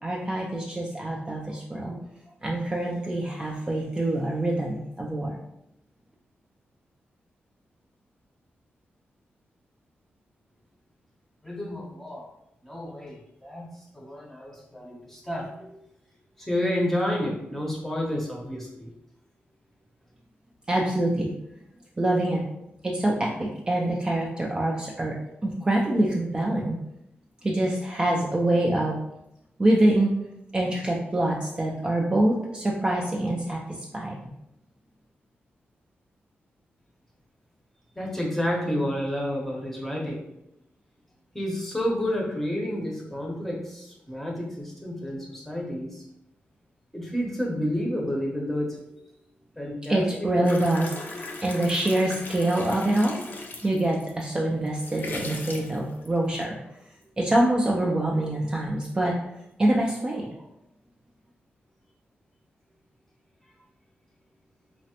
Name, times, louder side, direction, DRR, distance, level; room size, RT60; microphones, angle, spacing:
voice 1, 0.0-2.0 2.4-5.4 20.7-21.3 22.0-22.4 22.8-25.1 25.4-26.8 27.4-29.0 29.6-30.1 30.5-34.2 49.9-50.9 51.4-53.2 53.6-56.6 57.2-59.1 59.6-60.4, right 1 dB, 20° right, -2 dB, 0.4 m, -25 dB
voice 2, 11.4-12.3 12.6-15.8 16.4-18.9 38.0-40.2 41.3-46.0 46.9-48.8 49.6-50.0 50.4-50.5, left 1 dB, 5° left, -2 dB, 0.7 m, -30 dB
sound 1, 50.4-54.2 54.7-56.4, left 2 dB, 55° left, 0.4 m, -38 dB
3.2 x 2.0 x 2.8 m, 0.82 s
wide cardioid pair, 105°, 4 cm